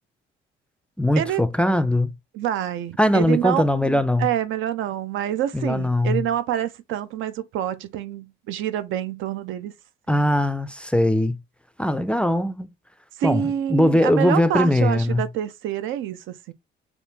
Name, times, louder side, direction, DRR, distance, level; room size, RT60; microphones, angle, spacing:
voice 1, 1.0-2.1 3.0-4.3 5.5-6.2 10.1-11.4 11.8-12.7 13.2-15.2, left 1 dB, 5° left, 0.3 m, -20 dB
voice 2, 2.3-9.7 13.2-16.5, right 11 dB, 80° right, 0.4 m, -27 dB
3.5 x 2.4 x 2.7 m
cardioid pair, 90°, 20 cm